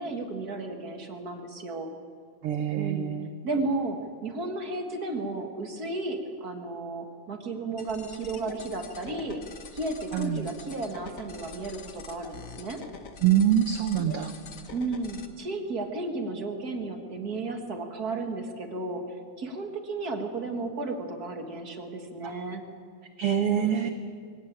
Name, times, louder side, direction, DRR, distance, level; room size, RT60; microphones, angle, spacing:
voice 1, 0.0-1.9 2.7-3.1 3.4-9.4 9.7-12.8 14.7-22.6 23.5-23.9, right 3 dB, 35° right, 4 dB, 1.8 m, -33 dB
voice 2, 2.4-3.3 10.1-10.5 13.2-14.3 22.2-22.3 23.2-23.9, right 10 dB, 65° right, 8 dB, 1.4 m, -25 dB
sound 1, 7.8-15.3, left 4 dB, 70° left, 0.7 m, -45 dB
23.0 x 17.0 x 8.9 m, 2.1 s
omnidirectional pair, 3.5 m